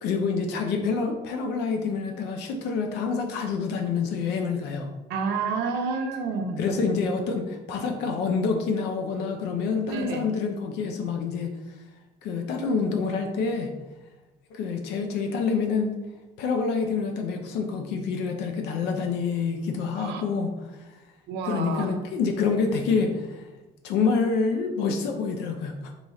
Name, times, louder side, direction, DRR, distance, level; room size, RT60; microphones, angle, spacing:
voice 1, 0.0-4.9 6.6-11.5 12.2-13.7 14.5-15.9 16.4-20.5 21.5-23.5 23.8-25.9, left 5 dB, 85° left, 4 dB, 0.5 m, -27 dB
voice 2, 5.1-6.6 9.8-10.2 19.9-20.3 21.3-22.0, right 4 dB, 85° right, 5 dB, 0.5 m, -29 dB
3.0 x 2.3 x 4.0 m, 1.1 s
cardioid pair, 110°, 17 cm